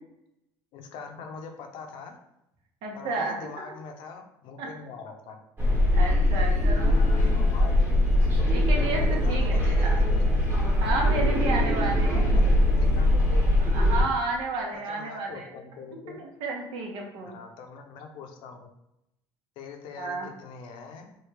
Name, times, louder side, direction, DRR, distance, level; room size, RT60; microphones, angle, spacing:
voice 1, 0.7-2.2 2.9-5.4 6.8-7.8 8.4-8.5 9.1-10.3 12.0-13.6 14.7-16.2 17.3-18.7 19.6-21.2, left 5 dB, 70° left, 4 dB, 0.6 m, -43 dB
voice 2, 2.8-3.4 4.6-4.7 6.0-7.3 8.4-10.0 10.8-12.2 13.6-15.5 16.2-17.3 20.0-20.3, right 3 dB, 70° right, 0 dB, 0.9 m, -32 dB
sound 1, 5.6-14.0, left 1 dB, 25° right, 1.2 m, -22 dB
3.2 x 2.3 x 3.3 m, 0.84 s
supercardioid pair, 90°, 9 cm